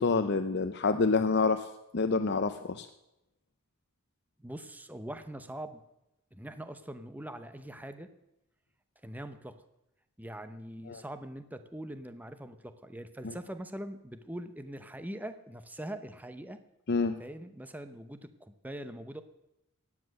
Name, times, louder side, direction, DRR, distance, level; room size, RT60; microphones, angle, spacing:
voice 1, 0.0-1.7 1.9-2.9 10.9-11.0 13.2-13.3 16.9-17.2, left 4 dB, 50° left, 8 dB, 0.6 m, -27 dB
voice 2, 4.4-5.8 6.3-8.1 9.0-9.5 10.2-16.6 17.2-19.2, right 1 dB, 10° right, 10 dB, 0.8 m, -42 dB
16.0 x 9.8 x 6.5 m, 0.90 s
head